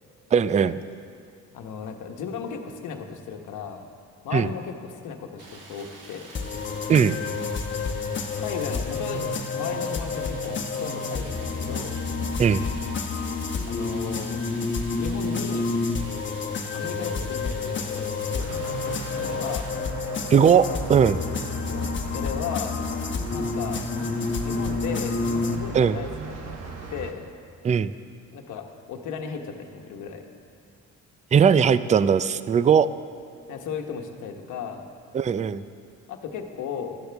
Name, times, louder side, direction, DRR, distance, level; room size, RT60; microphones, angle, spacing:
voice 1, 0.3-0.8 4.3-4.5 6.9-7.2 12.4-12.6 20.3-21.2 25.7-26.0 27.6-27.9 31.3-32.9 35.1-35.6, right 7 dB, 25° right, 15 dB, 0.4 m, -19 dB
voice 2, 1.5-3.8 4.2-6.3 8.4-9.3 9.5-12.0 13.7-14.4 14.9-15.7 16.7-18.6 18.8-19.7 21.7-22.8 23.3-23.8 24.4-27.3 28.3-30.3 33.5-34.8 36.1-37.0, left 7 dB, 80° left, 4 dB, 1.2 m, -35 dB
Stream, 5.4-19.7, right 2 dB, 85° right, 2.0 m, -46 dB
sound 1, 6.3-25.5, left 4 dB, 40° left, 1.1 m, -29 dB
sound 2, 18.4-27.1, right 4 dB, 60° right, 1.4 m, -39 dB
17.0 x 12.5 x 3.5 m, 2.3 s
cardioid pair, 90°, 30 cm